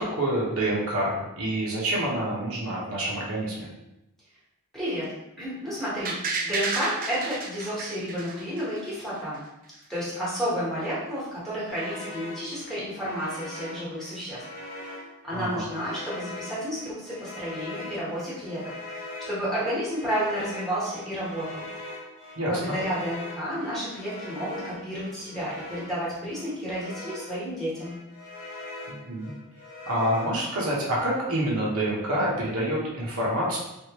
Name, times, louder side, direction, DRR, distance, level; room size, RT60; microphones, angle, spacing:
voice 1, 0.0-3.7 15.3-15.6 22.4-22.8 28.9-29.3 29.9-33.6, right 1 dB, 75° right, -5 dB, 1.0 m, -27 dB
voice 2, 4.7-5.1 5.4-9.4 9.9-14.4 14.8-14.9 15.2-18.6 18.9-21.6 22.4-28.0, equal, ahead, -9 dB, 1.2 m, -31 dB
sound 1, 6.0-9.0 9.3-9.4, right 4 dB, 40° right, 0.4 m, -31 dB
sound 2, 11.7-27.5 27.7-30.8, left 2 dB, 80° left, 1.1 m, -41 dB
3.3 x 2.5 x 2.9 m, 0.91 s
head